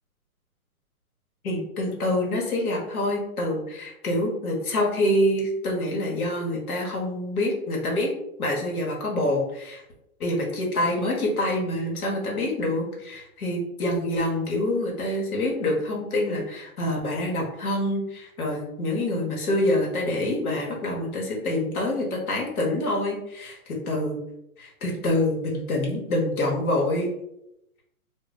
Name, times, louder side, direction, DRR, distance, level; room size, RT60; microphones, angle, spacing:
voice 1, 1.4-8.1 8.4-9.8 10.2-23.6 23.9-24.2 24.6-27.1, left 1 dB, 70° left, -1 dB, 1.1 m, -26 dB
2.3 x 2.3 x 3.9 m, 0.83 s
hypercardioid pair, 180°, 44 cm